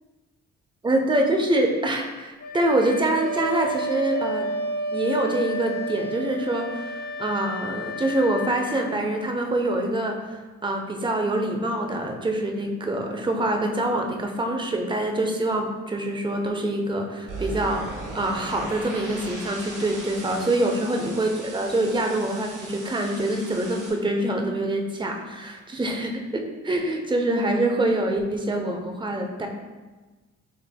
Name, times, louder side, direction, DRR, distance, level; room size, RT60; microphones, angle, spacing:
voice 1, 0.8-4.5 4.9-29.5, right 1 dB, 15° right, 3 dB, 0.7 m, -25 dB
Wind instrument woodwind instrument, 2.4-8.9, right 1 dB, 30° left, 0.6 m, -31 dB
sound 1, 17.3-23.9, right 2 dB, 90° right, 1.2 m, -38 dB
7.1 x 3.2 x 2.2 m, 1.2 s
cardioid pair, 90°, 30 cm